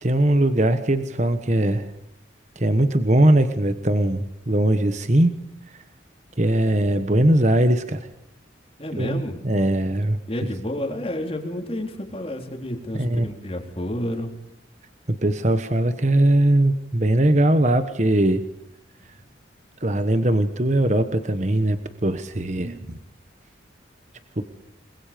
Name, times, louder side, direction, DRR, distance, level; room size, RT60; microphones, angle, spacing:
voice 1, 0.0-1.9 2.6-5.3 6.4-8.1 9.0-10.2 12.9-13.3 15.1-18.4 19.8-23.0 24.4-24.5, right 1 dB, 40° right, 9 dB, 1.2 m, -20 dB
voice 2, 8.8-9.4 10.3-14.3, left 1 dB, 30° left, 3 dB, 3.6 m, -30 dB
29.0 x 21.5 x 5.2 m, 0.75 s
head